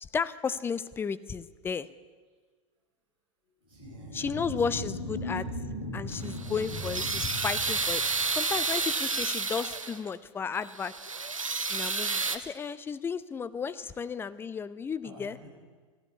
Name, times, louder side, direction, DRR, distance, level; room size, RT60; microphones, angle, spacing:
voice 1, 0.0-1.9 4.1-5.5 5.9-10.9 11.7-15.4, left 6 dB, 15° left, 15 dB, 0.5 m, -33 dB
sound 1, 3.7-8.7, left 1 dB, 85° left, 1.8 m, -38 dB
voice 2, 3.7-4.9 13.8-13.9 15.0-15.5, right 2 dB, 30° right, -4 dB, 5.4 m, -48 dB
sound 2, 6.1-10.1 10.6-12.4, right 4 dB, 85° right, 0.8 m, -31 dB
14.5 x 11.0 x 8.2 m, 1.5 s
figure-of-eight pair, 85°, 17 cm